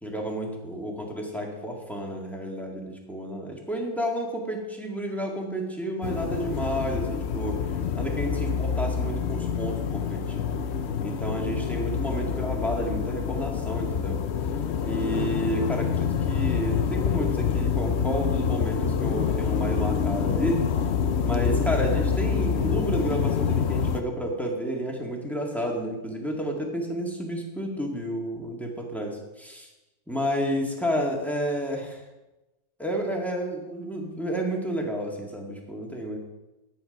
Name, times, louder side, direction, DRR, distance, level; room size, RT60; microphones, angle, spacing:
voice 1, 0.0-7.6 8.0-10.5 11.0-14.2 14.8-20.6 21.2-29.7 30.1-32.0 32.8-36.2, equal, ahead, -1 dB, 1.7 m, -31 dB
sound 1, 6.0-24.0, left 7 dB, 85° left, 0.5 m, -27 dB
9.7 x 9.3 x 5.3 m, 1.0 s
omnidirectional pair, 1.9 m